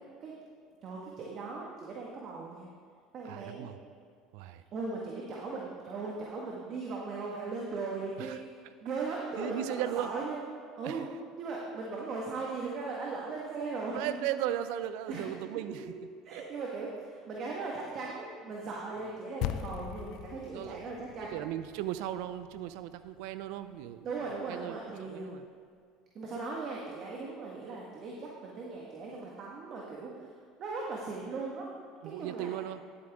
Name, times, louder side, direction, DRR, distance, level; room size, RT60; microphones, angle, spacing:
voice 1, 0.8-2.7 3.1-3.7 4.7-8.4 8.8-10.4 10.8-11.1 11.4-14.1 15.1-15.2 16.2-21.4 24.0-25.3 26.1-30.3 30.6-31.7 32.0-32.6, right 3 dB, 50° right, -3 dB, 1.6 m, -38 dB
voice 2, 3.2-3.8 4.3-4.6 8.2-8.4 9.3-10.1 10.8-11.1 13.9-15.8 16.3-16.4 20.5-20.8 21.3-24.1 24.5-25.4 32.0-32.8, right 12 dB, 75° right, 12 dB, 0.5 m, -37 dB
sound 1, 19.4-23.9, left 12 dB, 65° left, 0.4 m, -41 dB
11.0 x 8.8 x 3.6 m, 2.1 s
supercardioid pair, 85°, 0 cm